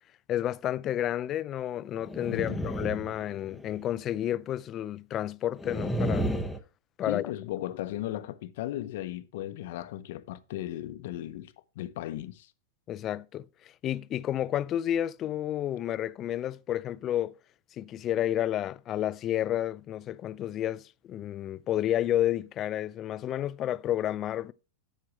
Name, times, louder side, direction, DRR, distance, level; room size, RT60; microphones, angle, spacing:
voice 1, 0.3-6.3 7.0-7.3 12.9-13.5 13.8-17.3 17.8-24.5, left 12 dB, 30° left, 0.3 m, -31 dB
sound 1, 2.0-3.8 5.6-6.6, equal, 5° left, 0.8 m, -31 dB
voice 2, 2.3-2.6 7.0-12.5, left 13 dB, 65° left, 0.7 m, -36 dB
9.8 x 7.5 x 3.0 m
supercardioid pair, 140°, 0 cm